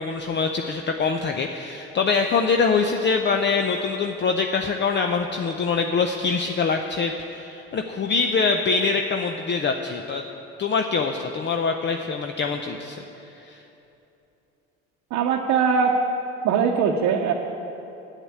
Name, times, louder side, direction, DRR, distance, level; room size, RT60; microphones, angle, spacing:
voice 1, 0.0-10.2 10.6-13.0 13.4-13.6, left 5 dB, 35° left, 4 dB, 0.6 m, -24 dB
voice 2, 15.1-16.0 16.4-17.3, right 6 dB, 65° right, 0 dB, 0.8 m, -21 dB
8.0 x 7.4 x 8.4 m, 2.9 s
supercardioid pair, 70°, 31 cm